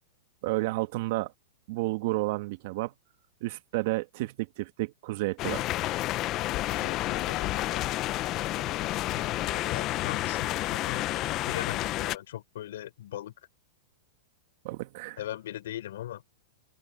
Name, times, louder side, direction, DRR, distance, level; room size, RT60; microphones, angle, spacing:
voice 1, 0.4-1.3 1.7-2.9 3.4-5.6 14.6-15.2, right 20 dB, 55° right, 2.0 m, -31 dB
sound 1, 5.4-12.2, left 16 dB, 35° left, 0.9 m, -30 dB
voice 2, 6.7-7.9 8.7-11.1 11.4-13.3 15.2-16.2, left 13 dB, 70° left, 6.3 m, -40 dB
hypercardioid pair, 135°, 0 cm